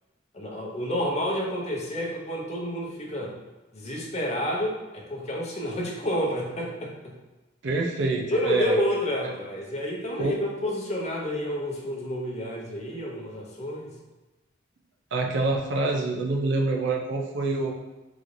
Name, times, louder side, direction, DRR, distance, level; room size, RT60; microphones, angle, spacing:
voice 1, 0.3-3.3 3.7-7.1 8.3-13.9, equal, 35° left, -2 dB, 0.7 m, -29 dB
voice 2, 7.6-8.8 10.2-10.4 15.1-17.7, right 3 dB, 65° right, 1 dB, 0.5 m, -26 dB
3.8 x 3.1 x 2.6 m, 1.1 s
head